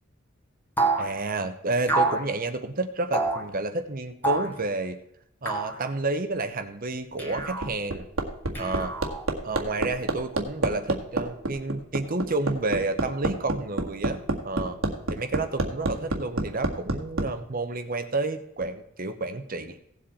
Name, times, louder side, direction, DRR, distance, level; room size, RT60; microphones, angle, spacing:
sound 1, 0.8-1.1 1.9-2.2 3.1-3.4 4.2-4.6 5.5-5.8 7.2-7.7 8.5-9.2, right 3 dB, 10° left, 1.7 m, -26 dB
voice 1, 1.0-5.0 5.4-8.1 8.6-8.9 9.4-14.8 15.1-19.8, right 2 dB, 45° right, 9 dB, 1.0 m, -30 dB
Hammer, 7.1-17.3 18.6-18.7, right 2 dB, 80° right, 1.8 m, -28 dB
16.5 x 7.8 x 4.3 m, 0.77 s
head